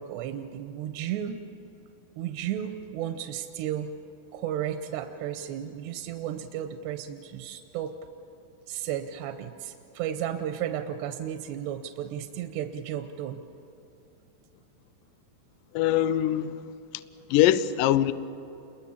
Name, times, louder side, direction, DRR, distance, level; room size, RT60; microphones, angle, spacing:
voice 1, 0.0-1.4 2.2-3.9 4.3-8.0 8.7-13.4, right 10 dB, 85° right, 2.9 m, -33 dB
voice 2, 15.7-16.6 17.3-18.1, left 12 dB, 85° left, 2.0 m, -22 dB
28.5 x 22.0 x 7.2 m
omnidirectional pair, 4.9 m